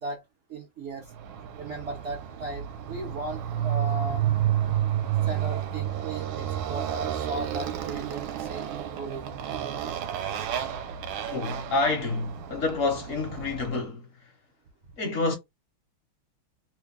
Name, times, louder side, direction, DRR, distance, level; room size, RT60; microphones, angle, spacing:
voice 1, 0.5-1.1 1.6-4.2 5.2-9.2, right 2 dB, 55° right, 0.8 m, -36 dB
Motorcycle, 1.1-13.8, right 11 dB, 75° right, 1.4 m, -31 dB
voice 2, 11.3-14.1 15.0-15.4, left 3 dB, 55° left, 0.9 m, -28 dB
3.3 x 2.2 x 3.5 m
omnidirectional pair, 2.3 m